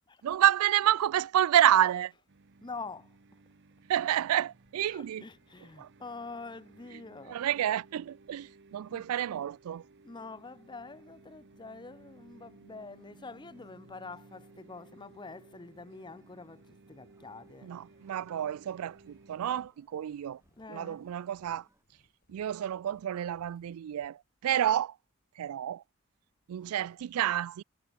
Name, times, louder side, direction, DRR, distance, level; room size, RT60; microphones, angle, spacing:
voice 1, 0.2-2.1 3.9-5.2 5.8-5.9 7.3-9.8 17.6-20.4 20.7-21.7 22.3-25.0 25.4-25.8 26.5-27.6, right 11 dB, 85° right, 0.3 m, -29 dB
sound 1, 2.3-19.6, right 3 dB, 55° right, 0.9 m, -58 dB
voice 2, 2.6-3.2 4.8-7.4 8.9-9.5 10.0-17.7 20.6-21.1, left 3 dB, 20° left, 0.6 m, -46 dB
sound 2, 13.0-21.8, right 1 dB, 15° right, 5.5 m, -73 dB
sound 3, 18.8-24.1, left 1 dB, 40° left, 5.8 m, -70 dB
head